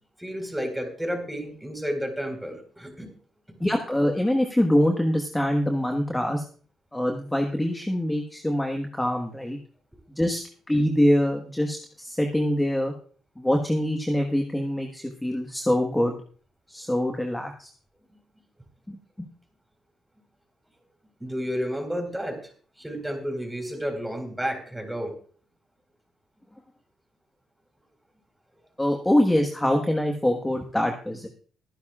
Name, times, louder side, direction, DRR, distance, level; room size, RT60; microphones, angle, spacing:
voice 1, 0.2-3.1 21.2-22.4 22.8-25.1, equal, 5° right, 4 dB, 4.4 m, -31 dB
voice 2, 3.6-6.4 6.9-9.6 10.2-10.4 10.7-12.9 13.4-16.1 16.7-17.7 18.9-19.3 28.8-31.3, left 1 dB, 10° left, 3 dB, 1.5 m, -24 dB
23.5 x 10.5 x 2.4 m, 0.43 s
cardioid pair, 90°, 0 cm